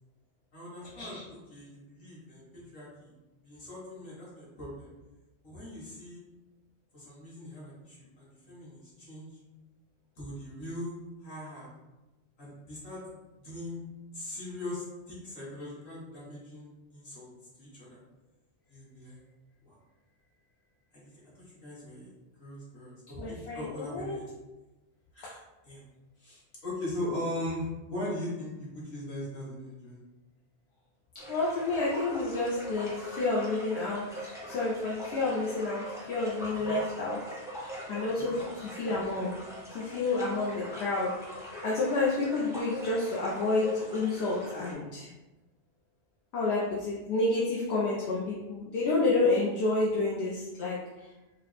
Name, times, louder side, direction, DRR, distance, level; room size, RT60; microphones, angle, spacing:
voice 1, 0.5-3.1 3.4-4.9 5.4-6.2 6.9-9.3 10.2-11.7 12.4-13.0 13.4-13.8 14.1-17.3 17.6-18.0 18.7-19.2 19.6-19.8 20.9-22.1 22.4-24.3 25.1-25.8 26.2-30.0 36.6-36.8 38.2-38.4, left 1 dB, 55° left, -7 dB, 1.5 m, -40 dB
voice 2, 23.2-24.2 31.3-34.0 34.5-35.8 36.1-37.2 37.6-39.3 39.7-45.1 46.3-51.1, left 3 dB, 75° left, -5 dB, 0.9 m, -29 dB
sound 1, 31.2-44.7, right 1 dB, 5° right, 0.4 m, -41 dB
4.9 x 2.0 x 3.2 m, 1.1 s
omnidirectional pair, 1.1 m